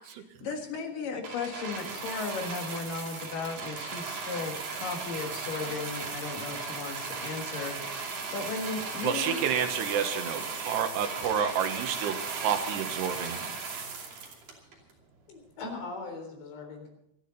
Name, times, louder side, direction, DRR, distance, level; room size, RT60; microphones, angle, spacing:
voice 1, 0.4-9.4, left 4 dB, 60° left, 4 dB, 3.1 m, -36 dB
sound 1, 1.2-14.9 15.7-15.8, right 4 dB, 55° right, 4.2 m, -37 dB
voice 2, 9.0-13.4, right 8 dB, 80° right, 7 dB, 3.2 m, -29 dB
voice 3, 15.3-16.9, left 3 dB, 85° left, 3 dB, 6.0 m, -40 dB
27.0 x 10.5 x 4.1 m, 0.79 s
omnidirectional pair, 4.9 m